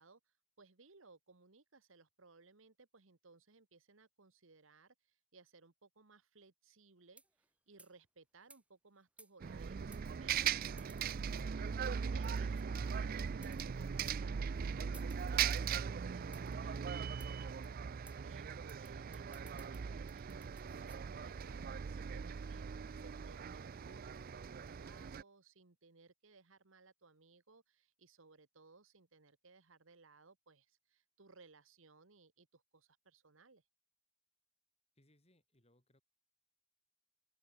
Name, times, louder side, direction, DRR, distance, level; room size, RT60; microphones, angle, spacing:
voice 1, 0.0-7.2 7.7-33.6, right 4 dB, 75° right, 1.5 m, -63 dB
sound 1, 7.1-7.5 7.8-8.0 8.5-8.6 9.2-9.5 9.9-10.0 10.8-11.5 12.2-12.7 13.3-13.6 14.0-14.2 14.9-15.7 16.3-16.6 17.2-17.3 17.6-17.7 18.1-18.2 18.7-21.0, right 2 dB, 5° right, 2.0 m, -61 dB
Bus, 9.4-25.2, right 7 dB, 45° right, 0.4 m, -39 dB
voice 2, 34.9-36.0, left 1 dB, 30° left, 7.7 m, -71 dB
open air
head